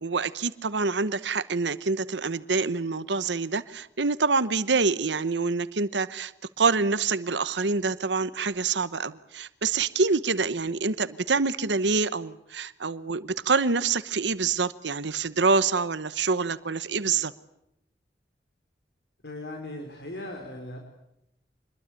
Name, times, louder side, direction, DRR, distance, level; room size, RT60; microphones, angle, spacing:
voice 1, 0.0-6.3 6.6-17.3, right 4 dB, 90° right, 14 dB, 1.0 m, -26 dB
voice 2, 19.2-20.8, left 1 dB, 70° left, 3 dB, 4.1 m, -38 dB
26.5 x 21.5 x 8.4 m, 0.80 s
head